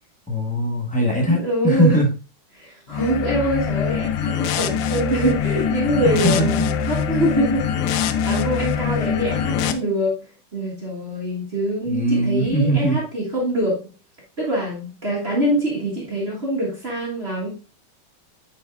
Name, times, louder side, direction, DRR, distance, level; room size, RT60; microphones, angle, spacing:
voice 1, 0.3-2.1 6.0-6.6 11.9-13.0, equal, 5° left, -3 dB, 1.1 m, -20 dB
voice 2, 1.3-2.0 2.5-8.0 8.2-13.9 14.4-17.5, right 1 dB, 35° right, -4 dB, 1.6 m, -24 dB
sound 1, 2.9-9.7, left 8 dB, 90° left, 1.5 m, -23 dB
9.3 x 4.8 x 2.4 m, 0.34 s
omnidirectional pair, 2.3 m